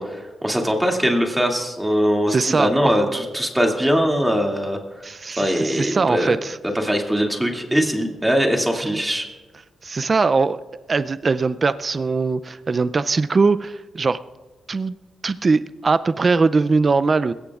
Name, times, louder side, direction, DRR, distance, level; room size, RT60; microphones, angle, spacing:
voice 1, 0.0-4.8 5.4-6.4 6.7-9.3, equal, 10° right, 1 dB, 2.3 m, -21 dB
voice 2, 2.3-2.7 3.1-3.2 5.0-6.6 8.7-9.0 9.8-10.6 10.9-14.2 14.7-15.0 15.2-17.3, right 4 dB, 40° right, 14 dB, 0.4 m, -21 dB
20.5 x 16.5 x 2.4 m, 1.2 s
cardioid pair, 85°, 0 cm